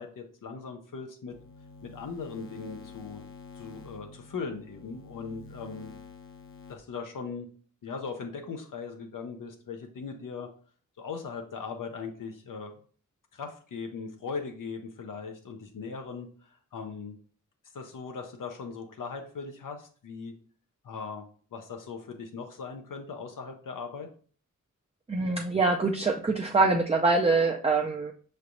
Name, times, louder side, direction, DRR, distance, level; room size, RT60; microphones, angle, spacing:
voice 1, 0.0-1.4 1.8-3.2 3.5-5.9 6.7-7.5 7.8-10.5 11.0-12.7 13.3-17.2 17.7-20.3 20.8-21.2 21.5-24.1, left 5 dB, 85° left, 3 dB, 0.7 m, -39 dB
sound 1, 1.3-6.8, left 3 dB, 40° left, 0.7 m, -49 dB
voice 2, 25.1-28.1, right 3 dB, 20° right, 1 dB, 0.4 m, -24 dB
5.6 x 3.2 x 2.6 m, 0.43 s
wide cardioid pair, 100°, 32 cm